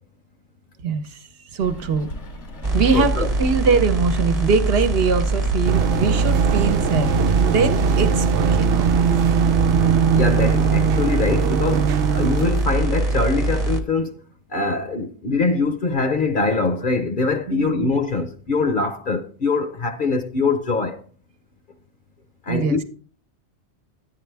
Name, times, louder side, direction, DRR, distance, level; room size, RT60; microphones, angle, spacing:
voice 1, 0.8-2.1 2.7-9.4 9.7-9.9 17.5-17.9 22.5-22.8, right 5 dB, 60° right, 1.0 m, -23 dB
Rain, 1.6-7.0, equal, 85° left, 2.0 m, -35 dB
sound 1, 2.6-13.8, right 2 dB, 35° right, 1.2 m, -23 dB
voice 2, 2.9-3.3 10.1-14.2 14.5-21.0 22.4-22.9, left 3 dB, 50° left, 0.9 m, -23 dB
sound 2, 5.7-12.6, right 7 dB, 85° right, 0.9 m, -20 dB
10.5 x 9.4 x 3.4 m
omnidirectional pair, 1.2 m